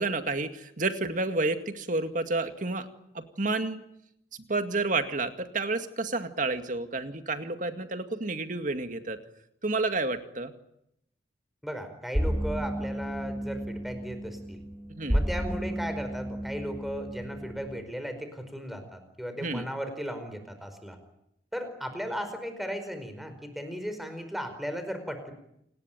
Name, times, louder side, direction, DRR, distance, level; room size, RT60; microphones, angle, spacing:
voice 1, 0.0-2.9 3.1-3.8 4.5-9.2 9.6-10.5 14.9-15.2 19.4-19.6, right 3 dB, 45° right, 8 dB, 2.2 m, -30 dB
voice 2, 11.6-14.6 15.1-21.0 21.5-25.3, equal, ahead, 8 dB, 4.8 m, -36 dB
sound 1, 12.1-17.8, equal, 15° right, 2.7 m, -32 dB
28.5 x 20.0 x 9.2 m, 0.79 s
head